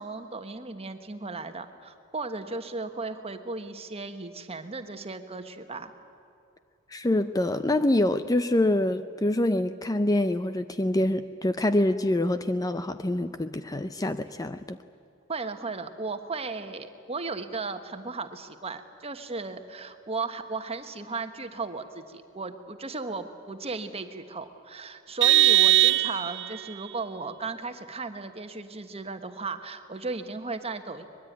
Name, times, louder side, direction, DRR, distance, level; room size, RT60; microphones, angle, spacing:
voice 1, 0.0-5.9 15.3-31.0, right 3 dB, 30° right, 8 dB, 1.4 m, -36 dB
voice 2, 6.9-14.8, left 1 dB, 15° left, 11 dB, 0.5 m, -25 dB
Vehicle horn car horn honking, 25.2-26.6, right 14 dB, 60° right, 0.8 m, -20 dB
23.5 x 21.5 x 9.4 m, 2.6 s
head